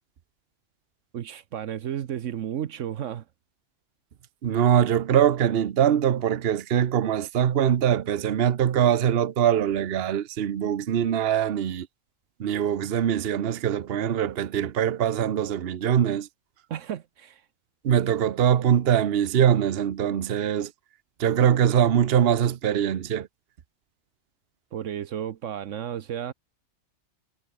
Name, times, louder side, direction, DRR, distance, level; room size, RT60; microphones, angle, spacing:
voice 1, 1.1-3.2 16.7-17.4 24.7-26.3, right 10 dB, 75° right, 1.1 m, -33 dB
voice 2, 4.4-11.9 12.4-16.3 17.8-20.7 21.2-23.3, right 9 dB, 55° right, 1.0 m, -23 dB
omnidirectional pair, 1.3 m